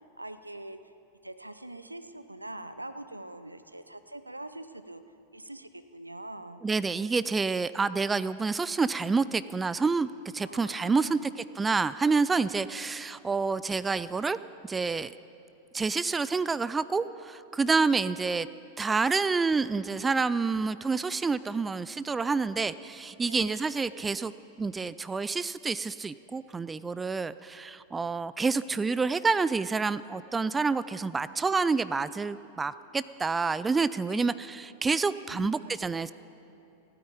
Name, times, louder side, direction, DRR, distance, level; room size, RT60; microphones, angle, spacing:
voice 1, 0.2-0.8 1.2-5.0 5.3-6.6 10.4-11.3 23.3-23.6 34.1-34.4 35.3-36.1, right 1 dB, 85° right, 11 dB, 0.6 m, -43 dB
voice 2, 6.6-10.1 10.3-11.3 11.6-14.4 14.6-15.1 15.7-18.5 18.8-24.3 24.6-36.1, right 4 dB, 15° right, 16 dB, 0.3 m, -28 dB
16.0 x 9.5 x 8.7 m, 2.8 s
figure-of-eight pair, 90°, 0 cm